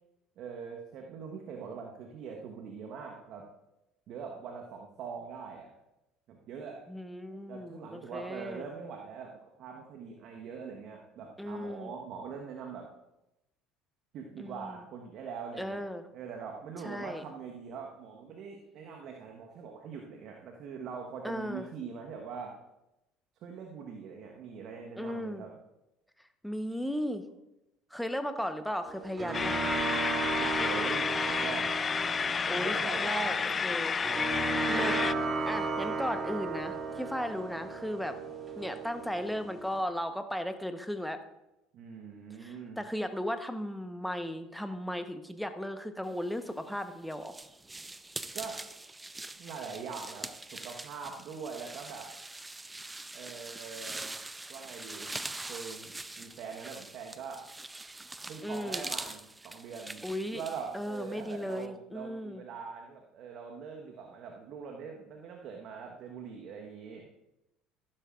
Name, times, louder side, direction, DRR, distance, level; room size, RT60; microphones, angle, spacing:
voice 1, 0.4-3.5 4.1-5.7 6.3-6.8 7.5-12.9 14.1-15.8 16.1-22.6 23.4-25.5 30.3-31.7 32.6-33.5 38.6-38.8 41.7-42.8 48.3-48.6 49.4-52.1 53.1-54.1 54.5-55.1 55.5-55.9 56.2-57.4 58.3-60.0 60.3-67.1, right 6 dB, 55° right, 1 dB, 1.3 m, -42 dB
voice 2, 6.9-8.7 11.4-11.9 14.4-14.7 15.6-16.0 16.8-17.2 21.2-21.7 25.0-25.4 26.4-27.2 27.9-29.7 32.4-34.0 34.7-38.2 38.6-41.2 42.4-47.4 58.4-58.9 60.0-60.4 60.7-62.4, equal, ahead, 8 dB, 1.1 m, -36 dB
sound 1, 28.9-39.8, right 3 dB, 30° right, 1.9 m, -35 dB
sound 2, 29.3-35.1, left 5 dB, 30° left, 0.3 m, -31 dB
sound 3, 46.5-61.7, right 2 dB, 15° right, 0.6 m, -43 dB
14.5 x 12.0 x 2.5 m, 0.93 s
hypercardioid pair, 65°, 0 cm